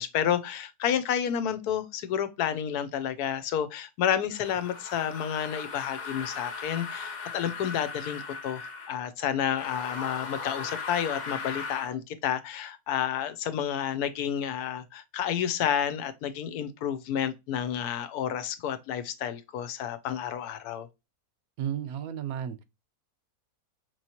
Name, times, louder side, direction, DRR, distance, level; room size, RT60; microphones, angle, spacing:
voice 1, 0.0-8.6 8.9-20.9, left 9 dB, 90° left, 1.2 m, -30 dB
sound 1, 4.3-9.0 9.5-11.9, left 5 dB, 45° left, 0.5 m, -38 dB
voice 2, 21.6-22.6, right 9 dB, 75° right, 1.0 m, -33 dB
4.9 x 3.0 x 2.8 m
omnidirectional pair, 1.6 m